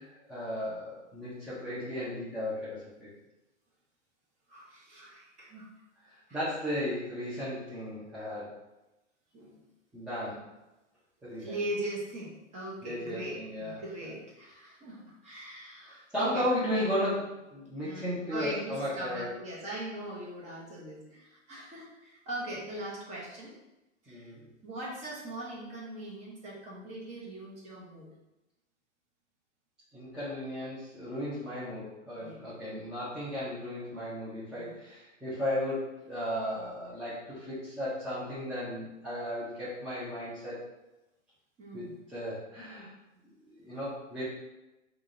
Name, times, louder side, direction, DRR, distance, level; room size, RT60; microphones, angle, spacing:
voice 1, 0.0-3.1 6.1-8.5 9.9-10.4 11.2-11.6 12.8-13.8 15.9-19.3 24.1-24.5 29.9-40.6 41.7-42.9 43.6-44.2, equal, ahead, -13 dB, 0.5 m, -35 dB
voice 2, 4.5-5.7 6.3-6.4 9.3-9.6 11.4-16.5 17.8-23.5 24.0-24.3 24.6-28.1 32.2-32.4 34.5-34.8 41.6-42.0 43.6-43.8, right 1 dB, 20° right, -4 dB, 0.9 m, -40 dB
3.5 x 2.4 x 3.7 m, 0.99 s
hypercardioid pair, 140°, 38 cm